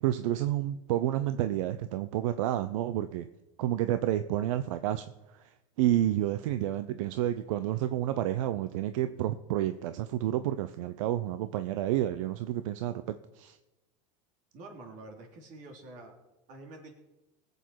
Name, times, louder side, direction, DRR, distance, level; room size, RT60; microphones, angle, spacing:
voice 1, 0.0-3.3 3.6-5.1 5.3-5.5 5.8-13.6, right 13 dB, 75° right, 11 dB, 0.7 m, -30 dB
voice 2, 14.5-16.1 16.5-16.9, right 2 dB, 50° right, 3 dB, 3.1 m, -47 dB
19.5 x 8.1 x 4.7 m, 0.99 s
supercardioid pair, 140°, 17 cm